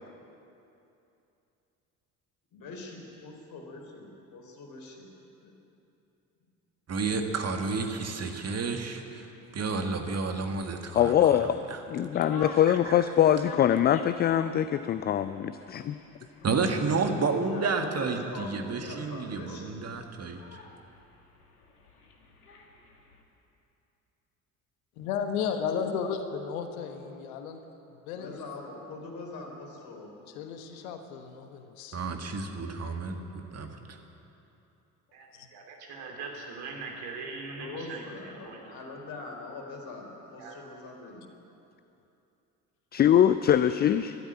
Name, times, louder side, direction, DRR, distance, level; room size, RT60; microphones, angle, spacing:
voice 1, 2.5-5.1 5.4-5.5 7.2-8.1 17.5-19.9 28.1-30.1 37.6-41.3, left 3 dB, 50° left, 1 dB, 3.7 m, -43 dB
voice 2, 6.9-9.3 9.5-11.8 12.7-13.0 16.4-20.4 31.9-33.7, right 4 dB, 35° right, 5 dB, 1.8 m, -31 dB
sound 1, 9.3-23.2, left 3 dB, 85° left, 1.5 m, -50 dB
voice 3, 10.9-11.6 11.9-16.0 42.9-44.2, left 10 dB, 25° left, 12 dB, 0.4 m, -23 dB
voice 4, 25.0-27.6 28.1-28.4 30.3-32.0 35.3-35.5, left 7 dB, 70° left, 6 dB, 1.3 m, -34 dB
voice 5, 35.1-38.6 40.4-40.6, right 4 dB, 60° right, 1 dB, 3.2 m, -41 dB
12.5 x 12.0 x 9.6 m, 2.8 s
figure-of-eight pair, 55°, 44 cm